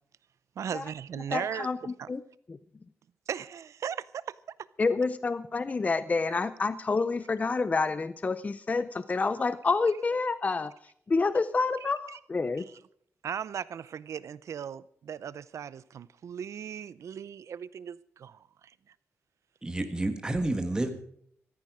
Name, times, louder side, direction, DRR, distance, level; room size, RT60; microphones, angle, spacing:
voice 1, 0.6-1.7 2.0-2.1 3.3-4.3 11.8-12.2 12.6-12.8 13.2-18.5, right 8 dB, 80° right, 0.6 m, -37 dB
voice 2, 1.3-1.8 2.1-2.2 2.5-2.6 4.8-10.7 11.1-12.6, left 4 dB, 30° left, 0.5 m, -28 dB
voice 3, 19.6-20.9, right 2 dB, 15° right, 1.6 m, -29 dB
15.0 x 13.5 x 4.9 m
wide cardioid pair, 140°, 5 cm